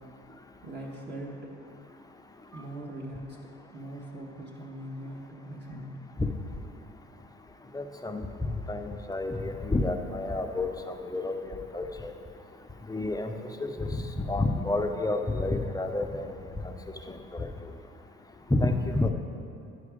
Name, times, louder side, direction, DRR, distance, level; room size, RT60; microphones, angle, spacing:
voice 1, 0.6-1.5 2.5-3.4 3.7-6.0 7.1-7.2 11.1-11.2, right 1 dB, 35° right, -3 dB, 1.5 m, -41 dB
voice 2, 7.7-8.3 8.7-12.1 12.9-13.3 13.6-16.3 16.6-16.7 17.1-17.5 18.5-19.1, left 2 dB, 10° left, 5 dB, 0.7 m, -30 dB
9.8 x 4.8 x 5.0 m, 2.6 s
supercardioid pair, 70°, 30 cm